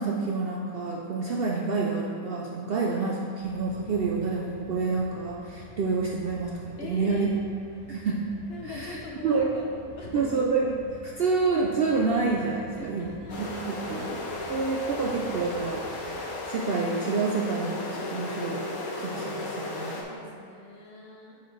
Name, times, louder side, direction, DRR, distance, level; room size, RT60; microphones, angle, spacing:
voice 1, 0.0-7.3 7.9-8.3 8.6-9.0 9.2-9.5 10.1-13.1 13.4-14.2 14.5-18.6 19.0-20.0, right 4 dB, 75° right, -2 dB, 0.5 m, -28 dB
sound 1, 3.4-16.2, equal, 50° right, 1.9 m, -49 dB
voice 2, 6.8-7.6 8.5-10.2 12.6-14.4 19.9-21.4, left 2 dB, 55° left, -2 dB, 0.8 m, -42 dB
sound 2, 13.3-20.0, left 2 dB, 75° left, 1.3 m, -35 dB
8.1 x 4.9 x 3.2 m, 2.5 s
omnidirectional pair, 1.6 m